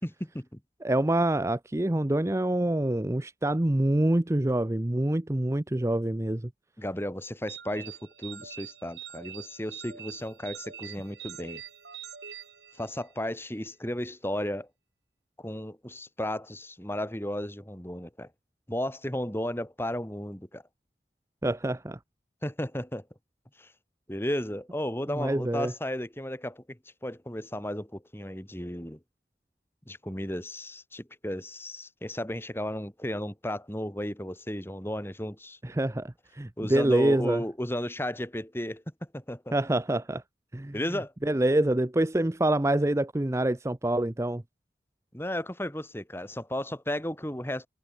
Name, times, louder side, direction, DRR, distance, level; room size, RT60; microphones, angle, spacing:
voice 1, 0.0-0.6 6.8-11.6 12.8-14.7 15.4-18.3 18.7-20.6 22.4-23.0 23.6-23.7 24.1-29.0 29.9-35.6 36.6-38.8 39.1-39.5 40.7-41.1 45.1-47.7, left 1 dB, 15° left, 3.3 m, -34 dB
voice 2, 0.8-6.5 21.4-22.0 25.1-25.7 35.6-37.4 39.5-40.2 40.5-40.8 41.2-44.4, right 1 dB, 15° right, 0.6 m, -26 dB
sound 1, 7.5-13.2, right 9 dB, 75° right, 7.9 m, -44 dB
head